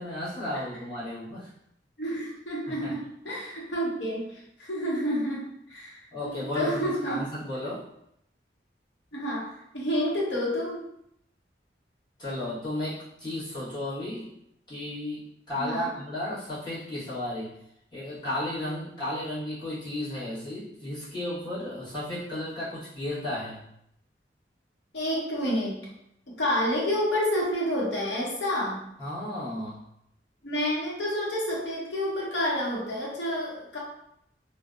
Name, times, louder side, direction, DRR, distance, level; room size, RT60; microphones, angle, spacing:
voice 1, 0.0-1.5 2.7-2.9 6.1-7.9 12.2-14.3 14.7-17.5 17.9-23.6 29.0-29.8, left 1 dB, 25° left, -12 dB, 1.1 m, -34 dB
voice 2, 2.0-7.2 9.1-10.8 15.6-15.9 24.9-25.8 26.3-28.8 30.4-33.8, equal, 75° left, -4 dB, 0.8 m, -29 dB
2.6 x 2.0 x 2.3 m, 0.76 s
head